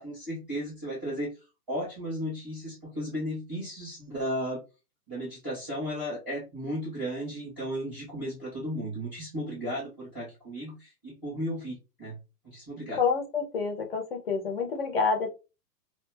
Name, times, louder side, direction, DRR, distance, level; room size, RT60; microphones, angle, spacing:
voice 1, 0.0-1.3 1.7-4.6 5.1-12.2 12.4-13.0, equal, 5° right, -7 dB, 0.7 m, -35 dB
voice 2, 13.0-15.3, left 5 dB, 35° left, 3 dB, 0.8 m, -28 dB
2.3 x 2.1 x 3.3 m, 0.28 s
hypercardioid pair, 160°, 49 cm